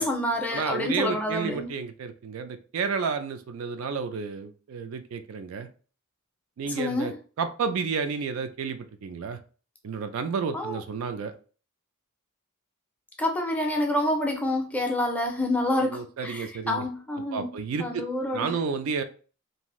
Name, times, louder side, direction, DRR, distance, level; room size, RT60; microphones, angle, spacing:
voice 1, 0.0-1.7 6.7-7.2 10.5-10.8 13.2-17.5 17.8-18.5, left 1 dB, 5° left, 0.4 m, -28 dB
voice 2, 0.5-5.7 6.6-9.4 9.8-11.3 15.8-16.8 17.3-18.0 18.3-19.0, right 5 dB, 65° right, 0.3 m, -31 dB
2.6 x 2.4 x 3.0 m
head